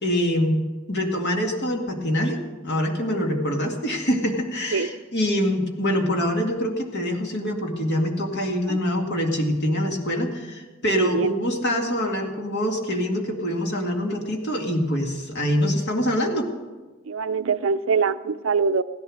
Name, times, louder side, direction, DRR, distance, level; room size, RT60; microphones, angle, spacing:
voice 1, 0.0-0.6 0.9-16.5, equal, 55° left, 2 dB, 2.2 m, -25 dB
voice 2, 10.9-11.3 17.1-18.8, right 5 dB, 70° right, 13 dB, 0.5 m, -23 dB
16.0 x 11.0 x 6.3 m, 1.3 s
head